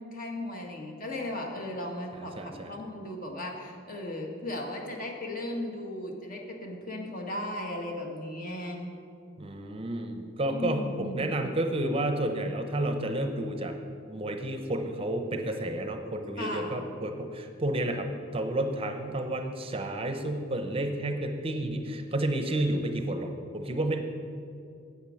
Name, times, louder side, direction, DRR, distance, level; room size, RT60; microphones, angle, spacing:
voice 1, 0.0-8.9 10.5-11.2 16.4-16.8, left 1 dB, 45° left, 1 dB, 1.5 m, -36 dB
voice 2, 2.1-2.7 9.4-13.7 14.1-18.1 18.3-24.0, right 1 dB, 30° right, 6 dB, 0.7 m, -31 dB
8.8 x 8.2 x 6.3 m, 2.5 s
head